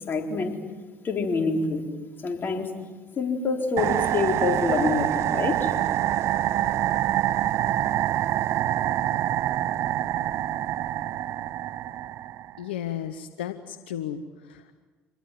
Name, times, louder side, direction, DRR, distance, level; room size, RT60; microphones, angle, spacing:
voice 1, 0.1-0.6 1.0-1.8 2.2-2.7 3.2-5.7, left 4 dB, 40° left, 3 dB, 3.9 m, -26 dB
sound 1, 3.8-12.6, right 12 dB, 55° right, 0.6 m, -26 dB
voice 2, 12.6-14.9, left 9 dB, 85° left, 11 dB, 0.9 m, -34 dB
26.5 x 20.5 x 7.6 m, 1.3 s
hypercardioid pair, 60°, 6 cm